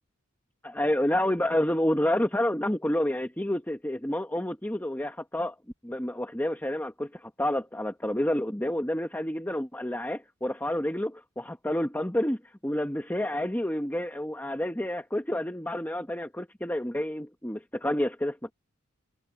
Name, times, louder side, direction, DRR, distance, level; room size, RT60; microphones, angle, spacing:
voice 1, 0.6-5.5 5.8-18.5, left 1 dB, 10° left, 1.4 m, -29 dB
head